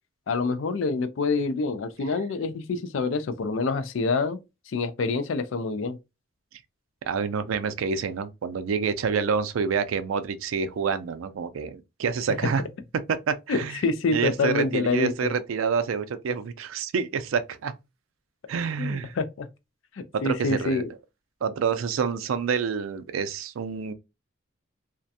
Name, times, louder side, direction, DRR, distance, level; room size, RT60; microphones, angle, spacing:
voice 1, 0.3-4.4 4.7-6.0 13.5-15.3 18.8-19.5 20.2-20.9, left 3 dB, 80° left, 0.4 m, -26 dB
voice 2, 7.1-12.6 13.1-13.8 14.1-17.7 18.5-19.1 20.1-20.8 21.4-23.9, right 6 dB, 90° right, 0.4 m, -27 dB
2.4 x 2.2 x 2.6 m
head